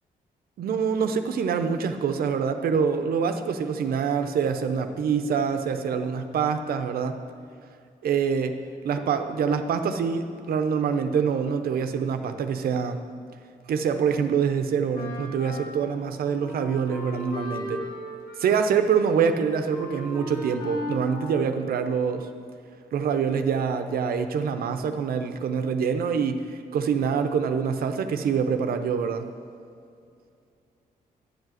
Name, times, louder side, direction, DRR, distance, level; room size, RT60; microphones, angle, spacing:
voice 1, 0.6-7.1 8.0-8.5 8.8-13.0 13.7-17.8 18.4-22.3 22.9-29.3, right 6 dB, 80° right, 8 dB, 0.7 m, -25 dB
Wind instrument woodwind instrument, 14.9-22.1, left 1 dB, 90° left, 1.9 m, -37 dB
10.5 x 4.8 x 7.8 m, 2.4 s
cardioid pair, 70°, 15 cm